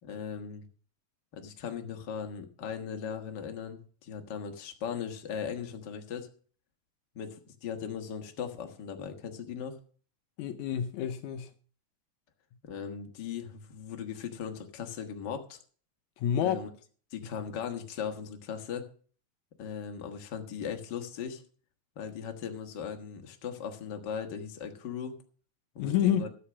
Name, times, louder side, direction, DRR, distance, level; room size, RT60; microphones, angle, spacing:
voice 1, 0.0-0.6 1.3-6.3 7.1-9.8 12.6-15.6 16.4-16.7 17.1-18.9 19.6-21.4 21.9-25.2 25.7-26.3, left 7 dB, 45° left, 1.7 m, -38 dB
voice 2, 10.4-11.5 16.2-16.6 25.8-26.3, left 9 dB, 75° left, 2.1 m, -28 dB
13.5 x 7.8 x 6.1 m
omnidirectional pair, 3.5 m